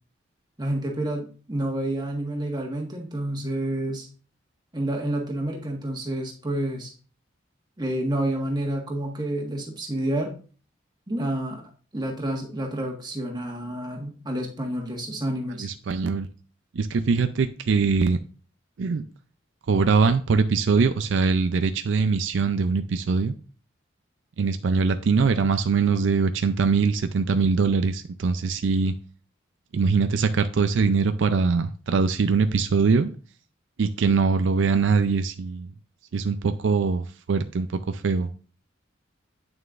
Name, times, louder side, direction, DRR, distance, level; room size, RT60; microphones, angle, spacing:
voice 1, 0.6-4.1 4.7-6.9 7.8-10.3 11.1-11.6 11.9-15.7, right 1 dB, 20° right, 1.5 m, -29 dB
voice 2, 15.6-16.3 16.7-18.2 18.8-19.0 19.7-23.3 24.4-28.9 29.7-33.1 33.8-35.7 36.1-38.4, right 4 dB, 65° right, 0.4 m, -22 dB
8.9 x 6.4 x 2.5 m
head